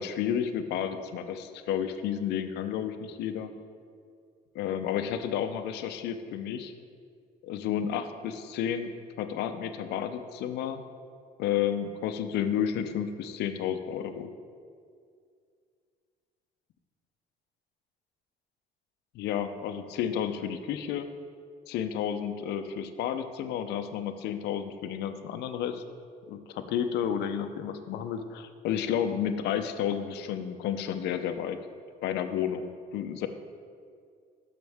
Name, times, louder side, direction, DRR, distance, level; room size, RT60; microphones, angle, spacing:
voice 1, 0.0-3.5 4.5-6.7 7.4-8.9 9.2-10.8 11.4-14.3 19.1-21.1 21.7-25.8 26.3-31.6 32.0-33.3, left 9 dB, 80° left, 8 dB, 0.6 m, -31 dB
12.5 x 5.9 x 3.5 m, 2.2 s
cardioid pair, 110°, 17 cm